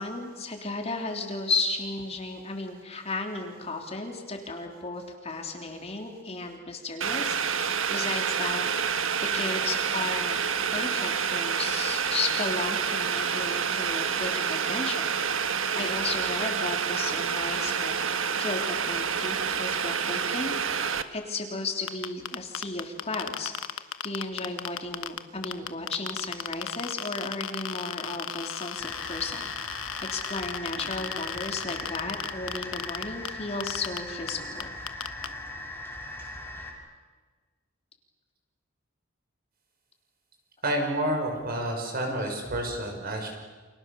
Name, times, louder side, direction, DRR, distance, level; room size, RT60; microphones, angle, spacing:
voice 1, 0.0-9.0 9.3-10.4 10.7-15.1 15.7-23.5 24.0-29.5 30.1-34.7, left 3 dB, 30° left, 2 dB, 3.4 m, -34 dB
Boiling, 7.0-21.0, right 7 dB, 75° right, 1.4 m, -28 dB
sound 1, 21.9-25.2 25.4-33.3 33.6-34.0 34.3-34.4 34.6-35.3, left 9 dB, 85° left, 1.3 m, -34 dB
sound 2, 28.8-36.7, left 2 dB, 10° left, 6.2 m, -40 dB
voice 2, 40.6-43.3, right 1 dB, 50° right, 2 dB, 6.5 m, -29 dB
30.0 x 28.0 x 7.0 m, 1.4 s
head